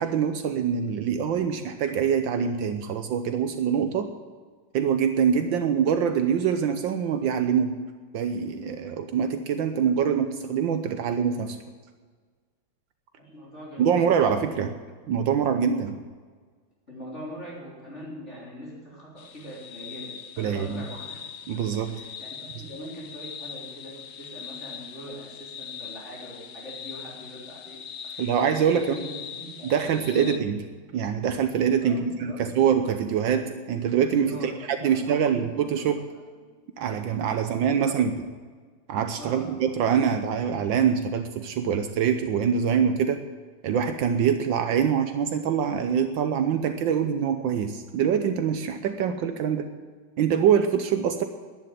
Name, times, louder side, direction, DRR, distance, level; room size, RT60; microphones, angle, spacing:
voice 1, 0.0-4.1 4.7-7.7 8.1-11.6 13.8-14.7 15.1-16.0 20.4-20.8 21.5-21.9 28.2-29.0 29.6-30.6 30.9-34.5 34.8-36.0 36.8-38.1 38.9-43.2 43.6-49.7 50.2-51.2, right 7 dB, 75° right, 7 dB, 1.5 m, -24 dB
voice 2, 13.2-14.6 16.9-21.2 21.8-30.4 31.9-32.4 34.3-35.9 37.2-38.3 39.1-39.5, equal, 35° left, -5 dB, 3.7 m, -42 dB
sound 1, 19.2-30.4, left 8 dB, 70° left, 0.6 m, -41 dB
11.0 x 10.0 x 9.1 m, 1.5 s
omnidirectional pair, 2.1 m